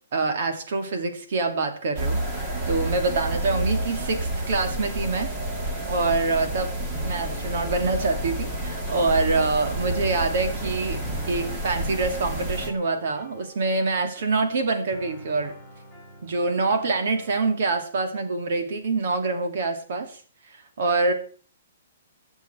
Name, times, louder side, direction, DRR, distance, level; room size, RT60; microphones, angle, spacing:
voice 1, 0.1-5.3 5.9-6.7 7.0-11.0 11.3-15.5 16.2-20.2 20.5-21.1, right 3 dB, 50° right, 6 dB, 2.6 m, -25 dB
sound 1, 2.0-12.7, right 1 dB, 20° right, 2.1 m, -29 dB
sound 2, 6.9-17.4, left 2 dB, ahead, 6.3 m, -48 dB
21.5 x 7.4 x 4.6 m, 0.43 s
hypercardioid pair, 170°, 0 cm